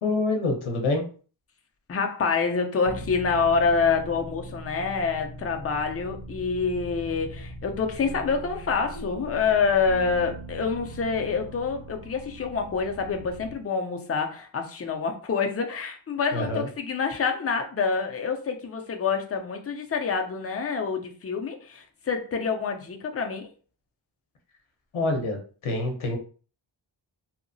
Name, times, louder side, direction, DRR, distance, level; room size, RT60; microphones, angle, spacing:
voice 1, 0.0-1.0 16.3-16.7 24.9-25.4 25.6-26.2, left 2 dB, 75° left, 3 dB, 0.7 m, -26 dB
voice 2, 1.9-23.5, left 5 dB, 30° left, 4 dB, 0.5 m, -27 dB
sound 1, 2.8-13.6, right 1 dB, 85° right, 0.6 m, -40 dB
2.8 x 2.0 x 2.6 m, 0.40 s
wide cardioid pair, 90°, 49 cm